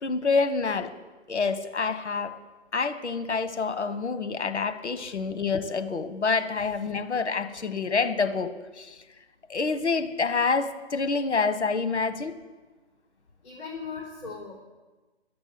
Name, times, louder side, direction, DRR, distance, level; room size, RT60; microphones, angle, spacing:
voice 1, 0.0-0.9 1.3-2.4 2.7-8.9 9.5-12.3, left 4 dB, 85° left, 10 dB, 1.5 m, -27 dB
voice 2, 13.4-14.6, left 5 dB, 50° left, -4 dB, 4.3 m, -38 dB
12.0 x 8.6 x 9.6 m, 1.2 s
hypercardioid pair, 160°, 33 cm